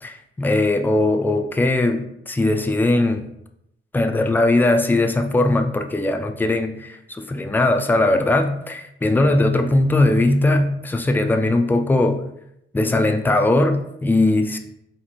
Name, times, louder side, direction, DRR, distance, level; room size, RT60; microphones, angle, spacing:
voice 1, 0.0-3.2 3.9-12.2 12.7-14.6, left 2 dB, 10° left, 5 dB, 0.3 m, -19 dB
4.1 x 2.5 x 4.3 m, 0.78 s
wide cardioid pair, 140°, 21 cm